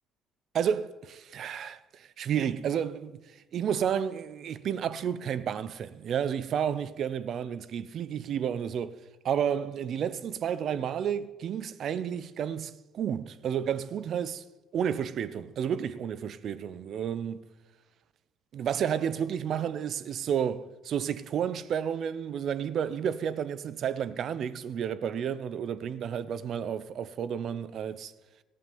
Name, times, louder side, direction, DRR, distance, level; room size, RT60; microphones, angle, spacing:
voice 1, 0.5-3.2 3.5-9.0 9.2-14.4 14.7-17.5 18.5-28.1, right 8 dB, 55° right, 0.7 m, -31 dB
15.5 x 7.2 x 9.4 m
hypercardioid pair, 60°, 0 cm